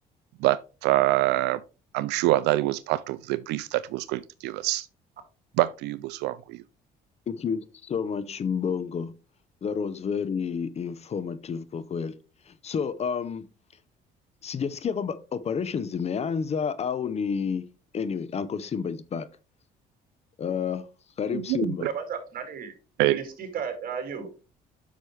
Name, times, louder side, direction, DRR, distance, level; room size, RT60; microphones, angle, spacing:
voice 1, 0.4-1.6 1.9-4.9 5.6-6.6 21.3-21.7 23.0-23.2, right 16 dB, 85° right, 0.4 m, -25 dB
voice 2, 7.3-9.1 9.6-12.1 12.5-13.5 14.4-17.6 17.9-19.3 20.4-20.9 21.2-21.9, left 6 dB, 40° left, 0.7 m, -30 dB
voice 3, 21.8-22.7 23.0-24.4, right 6 dB, 55° right, 2.5 m, -34 dB
8.4 x 6.1 x 3.3 m
cardioid pair, 110°, 17 cm